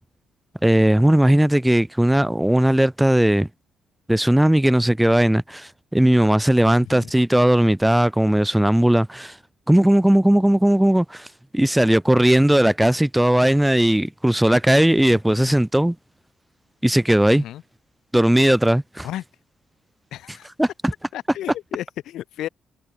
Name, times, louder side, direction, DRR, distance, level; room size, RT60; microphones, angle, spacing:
voice 1, 0.6-3.5 4.1-9.4 9.7-11.3 11.5-15.9 16.8-17.4 18.1-19.1 20.6-20.9, right 1 dB, 5° right, 1.0 m, -17 dB
voice 2, 6.8-7.1 12.1-12.2 15.1-15.6 17.3-17.6 19.0-19.2 20.1-20.5 21.1-22.5, left 12 dB, 80° left, 3.2 m, -34 dB
cardioid pair, 90°, 0 cm